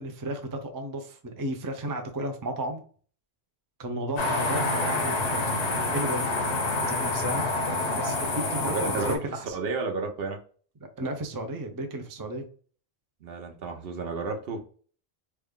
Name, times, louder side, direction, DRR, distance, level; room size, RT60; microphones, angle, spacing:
voice 1, 0.0-2.8 3.8-5.7 5.9-6.3 6.8-7.5 7.9-9.6 10.8-12.5, right 1 dB, 30° right, 5 dB, 0.4 m, -34 dB
sound 1, 4.2-9.2, left 2 dB, 90° left, 1.1 m, -27 dB
voice 2, 8.6-10.4 13.2-14.6, right 4 dB, 65° right, 4 dB, 0.9 m, -32 dB
3.2 x 2.2 x 3.5 m, 0.42 s
omnidirectional pair, 1.1 m